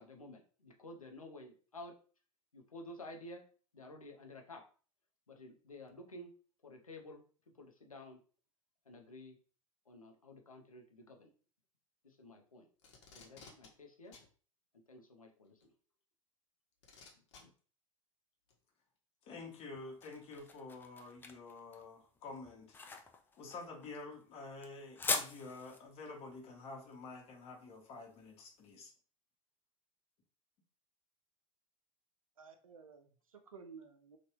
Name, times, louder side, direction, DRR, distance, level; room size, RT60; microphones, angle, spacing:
voice 1, 0.0-1.9 2.5-3.4 3.7-4.6 5.3-6.3 6.6-8.2 8.9-9.4 9.9-11.3 12.0-12.7 13.1-14.1 14.9-15.7 17.4-17.5, left 1 dB, 85° left, 0.7 m, -52 dB
Packing tape duct tape, 12.8-13.7 14.1-14.3 15.6-15.7 16.8-17.4 18.5-18.6, left 5 dB, 55° left, 1.0 m, -56 dB
voice 2, 19.2-22.8 23.4-28.9, left 3 dB, 35° left, 1.0 m, -49 dB
sound 1, 19.5-28.5, left 4 dB, 10° left, 0.4 m, -43 dB
voice 3, 32.4-34.2, right 5 dB, 75° right, 0.6 m, -54 dB
3.2 x 2.5 x 2.9 m
figure-of-eight pair, 85°, 18 cm